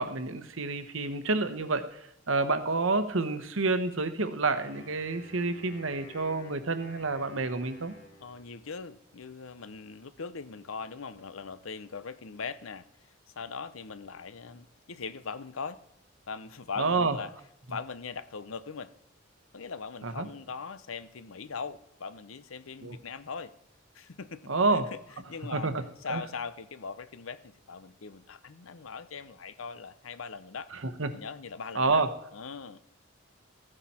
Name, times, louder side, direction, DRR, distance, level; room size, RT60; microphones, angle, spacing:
voice 1, 0.0-7.9 16.8-17.2 20.0-20.3 22.8-23.0 24.5-24.9 25.5-26.2 30.7-31.1 31.7-32.1, right 3 dB, 75° right, 10 dB, 1.1 m, -29 dB
Wind instrument woodwind instrument, 4.4-8.9, equal, 55° left, 2.7 m, -52 dB
voice 2, 8.2-12.9 13.4-15.8 16.3-17.3 17.7-18.9 19.5-23.5 23.9-24.8 25.3-25.7 26.0-30.7 31.1-32.0 32.3-32.8, left 5 dB, 80° left, 15 dB, 0.7 m, -40 dB
15.0 x 9.9 x 4.3 m, 0.76 s
head